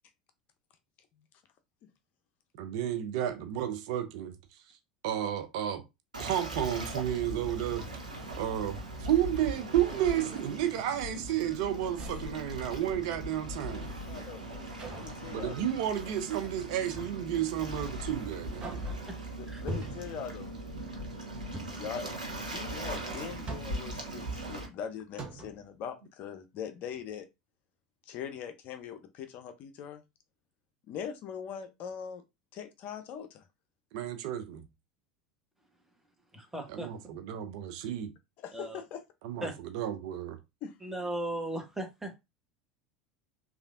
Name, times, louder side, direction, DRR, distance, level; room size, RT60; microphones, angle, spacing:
voice 1, 2.6-4.4 5.0-5.8 6.2-7.8 8.4-13.9 15.3-18.8 33.9-34.6 36.7-38.1 39.2-40.4, right 11 dB, 55° right, 0.5 m, -32 dB
Waves surf, 6.1-24.7, right 1 dB, 85° right, 0.8 m, -40 dB
sound 1, 7.3-8.6 9.1-9.5 10.0-10.3 10.7-11.6 11.9-13.5 14.8-15.3 16.9-17.3 17.8-17.9 18.4-19.2 19.7-20.3 21.4-21.9 23.1-24.0 24.7-24.8 25.1-25.7, right 1 dB, 30° right, 0.8 m, -44 dB
voice 2, 14.1-14.5 14.9-15.6 19.4-20.5 21.7-22.1 22.4-27.3 28.1-30.0 30.9-32.2 32.5-33.4 38.4-39.0 40.6-40.7, left 8 dB, 45° left, 0.5 m, -41 dB
voice 3, 36.3-36.9 38.5-38.8 39.4-39.5 40.8-42.2, right 1 dB, 5° right, 1.0 m, -36 dB
3.2 x 2.4 x 2.4 m
figure-of-eight pair, 75°, 4 cm